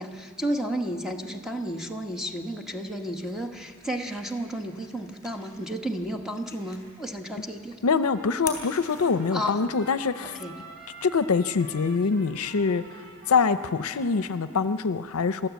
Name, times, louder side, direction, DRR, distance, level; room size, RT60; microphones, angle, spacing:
voice 1, 0.0-7.8 9.3-9.6 10.4-10.5, right 1 dB, ahead, 4 dB, 1.2 m, -32 dB
sound 1, 2.8-9.7, left 5 dB, 15° left, 3.8 m, -45 dB
voice 2, 7.8-10.4 11.0-12.8 13.3-15.5, left 5 dB, 75° left, 12 dB, 0.6 m, -24 dB
Trumpet, 8.0-14.6, right 2 dB, 45° right, 1.8 m, -48 dB
29.0 x 13.0 x 8.2 m, 2.4 s
head